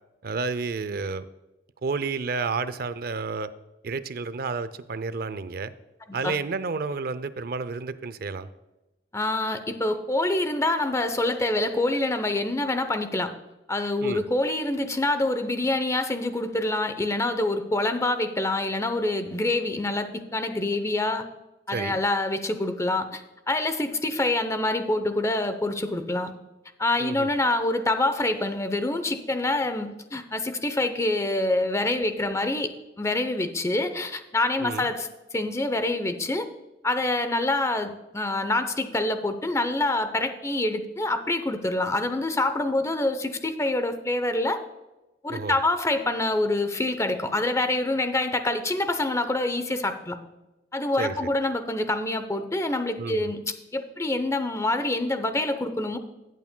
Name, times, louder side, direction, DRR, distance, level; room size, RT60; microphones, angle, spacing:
voice 1, 0.2-1.3 1.8-3.5 3.8-5.7 6.1-8.5 14.0-14.2 21.7-22.0 27.0-27.3 34.6-34.9 45.3-45.6 51.0-51.3 53.0-53.3, right 4 dB, 60° right, 14 dB, 0.5 m, -31 dB
voice 2, 9.1-13.3 13.7-21.3 21.7-23.2 23.5-26.3 26.8-32.7 33.0-36.5 36.8-44.6 45.2-50.2 50.7-53.4 53.7-56.0, left 2 dB, 15° left, 9 dB, 0.7 m, -26 dB
15.5 x 8.4 x 2.2 m, 1.0 s
head